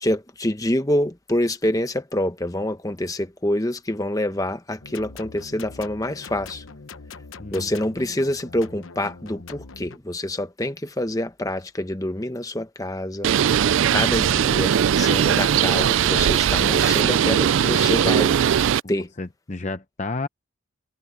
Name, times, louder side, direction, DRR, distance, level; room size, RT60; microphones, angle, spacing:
voice 1, 0.0-6.6 7.5-13.3 13.9-18.3 18.9-19.1, left 1 dB, 15° left, 1.0 m, -26 dB
sound 1, 4.8-10.0, left 4 dB, 80° left, 1.0 m, -42 dB
Bird, 13.2-18.8, right 9 dB, 70° right, 0.3 m, -19 dB
voice 2, 19.0-20.3, left 3 dB, 35° left, 0.7 m, -31 dB
head